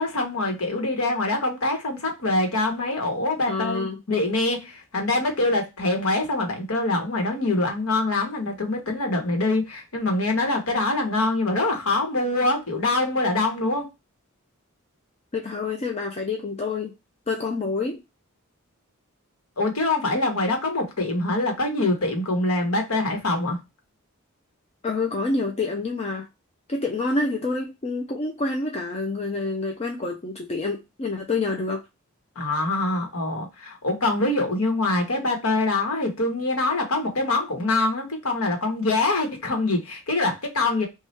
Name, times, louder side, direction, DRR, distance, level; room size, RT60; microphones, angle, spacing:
voice 1, 0.0-13.9 19.6-23.6 32.3-40.9, left 2 dB, 90° left, 1.2 m, -24 dB
voice 2, 3.5-4.0 15.3-16.9 17.3-18.0 24.8-26.3 26.7-31.8, left 3 dB, 30° left, 0.5 m, -27 dB
3.1 x 2.3 x 4.1 m
head